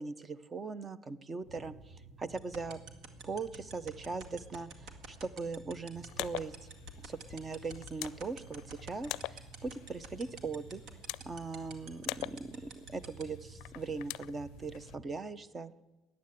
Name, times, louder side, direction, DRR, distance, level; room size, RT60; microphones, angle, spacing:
voice 1, 0.0-2.8 3.2-6.7 7.0-10.8 11.3-15.7, right 4 dB, 25° right, 17 dB, 0.8 m, -40 dB
sound 1, 1.4-15.1, right 3 dB, 80° right, 2.6 m, -54 dB
sound 2, 2.4-13.2, right 5 dB, 65° right, 2.0 m, -46 dB
sound 3, 6.0-14.9, left 19 dB, 80° left, 0.4 m, -45 dB
14.5 x 9.6 x 9.9 m, 1.2 s
cardioid pair, 125°, 0 cm